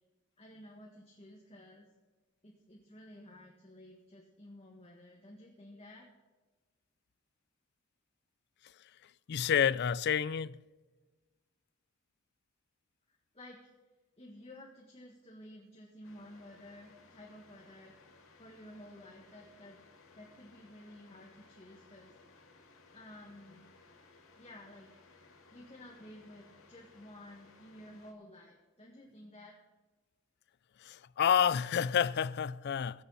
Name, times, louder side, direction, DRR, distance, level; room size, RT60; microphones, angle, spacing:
voice 1, 0.4-1.9 2.4-6.1 13.1-13.7 14.2-18.1 18.4-19.8 20.1-22.1 22.9-23.7 24.4-24.9 25.5-29.5, left 1 dB, 30° left, 1.8 m, -53 dB
voice 2, 9.3-10.6 30.8-33.0, left 8 dB, 55° left, 0.4 m, -29 dB
sound 1, 16.0-28.1, left 3 dB, 80° left, 2.1 m, -61 dB
22.0 x 7.8 x 4.2 m
head